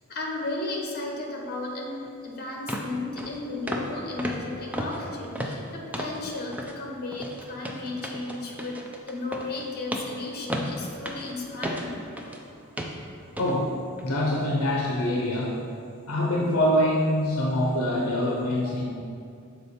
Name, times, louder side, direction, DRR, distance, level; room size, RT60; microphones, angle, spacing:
voice 1, 0.1-8.8 9.1-12.0, left 2 dB, 45° left, 0 dB, 1.1 m, -34 dB
sound 1, 2.1-2.2 2.7-2.9 3.2-3.4 3.7-3.9 4.2-6.2 6.5-6.8 7.1-12.4 12.8-13.0 13.4-13.5 14.0-14.1, equal, 5° right, 0.4 m, -34 dB
voice 2, 13.4-13.8 14.0-15.6 16.1-18.8, left 1 dB, 70° left, -2 dB, 0.7 m, -24 dB
6.7 x 4.3 x 4.1 m, 2.4 s
head